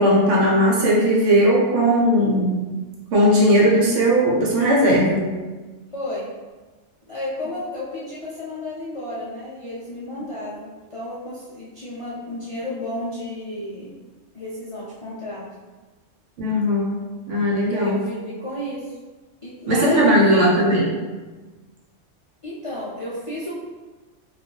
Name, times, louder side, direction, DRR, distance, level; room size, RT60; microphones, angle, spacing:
voice 1, 0.0-2.6 3.1-5.2 16.4-17.0 17.3-18.0 19.7-20.9, equal, 75° right, -4 dB, 1.1 m, -17 dB
voice 2, 5.9-6.3 7.1-14.0 14.3-15.4 17.7-19.0 19.4-20.5 22.4-23.5, left 1 dB, 50° left, -9 dB, 0.4 m, -32 dB
2.6 x 2.4 x 3.7 m, 1.3 s
omnidirectional pair, 1.3 m